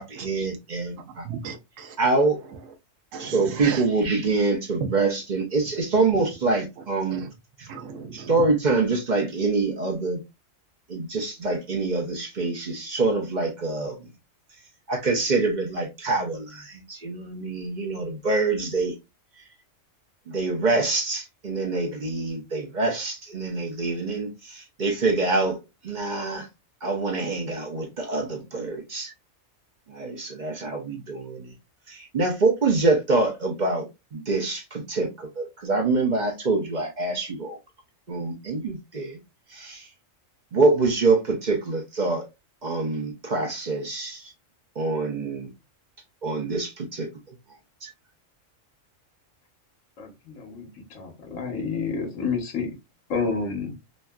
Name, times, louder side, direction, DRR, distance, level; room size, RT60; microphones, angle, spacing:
voice 1, 0.0-1.3 2.0-2.4 3.2-7.2 7.6-7.7 8.1-10.2 10.9-14.1 14.9-18.9 20.3-25.6 25.8-26.5 26.8-29.1 29.9-31.5 31.9-37.6 38.1-39.2 39.5-39.9 40.5-42.2 42.6-44.3 44.8-45.5 46.2-47.4 47.8-47.9, right 3 dB, 45° right, 0.7 m, -25 dB
voice 2, 1.1-2.0 2.5-2.6 3.1-3.9 4.8-4.9 6.8-7.3 7.7-8.5, right 6 dB, 75° right, 0.9 m, -35 dB
voice 3, 50.0-52.7 53.1-53.8, left 5 dB, 70° left, 1.2 m, -29 dB
3.1 x 2.6 x 2.2 m
omnidirectional pair, 1.4 m